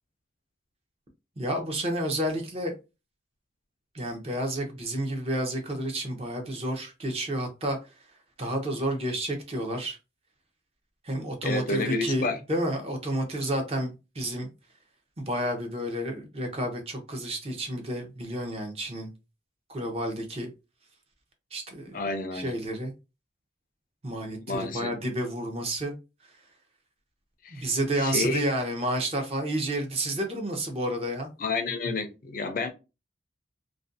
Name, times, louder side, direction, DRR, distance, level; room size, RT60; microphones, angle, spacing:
voice 1, 1.4-2.7 3.9-7.8 8.4-10.0 11.0-14.5 15.2-19.1 19.7-20.5 21.5-22.0 22.3-22.9 24.0-25.9 26.2-26.3 27.5-31.3, right 1 dB, 30° right, 0.6 m, -30 dB
voice 2, 11.4-12.4 21.9-22.6 24.5-24.9 27.4-27.7 28.0-28.4 31.4-32.7, left 3 dB, 45° left, 0.4 m, -30 dB
2.4 x 2.2 x 2.5 m
head